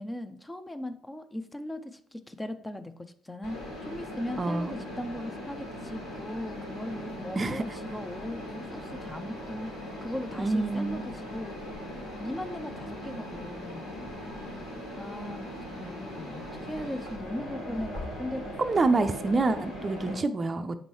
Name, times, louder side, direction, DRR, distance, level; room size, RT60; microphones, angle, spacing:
voice 1, 0.0-13.9 15.0-18.5 19.8-20.2, left 1 dB, 15° left, 9 dB, 0.6 m, -38 dB
Mechanisms, 3.4-20.1, left 1 dB, 80° left, 2.3 m, -40 dB
voice 2, 4.4-4.8 7.4-7.6 10.4-11.0 18.6-20.8, right 3 dB, 30° right, 7 dB, 0.5 m, -27 dB
7.0 x 5.2 x 3.1 m, 0.62 s
figure-of-eight pair, 45°, 0 cm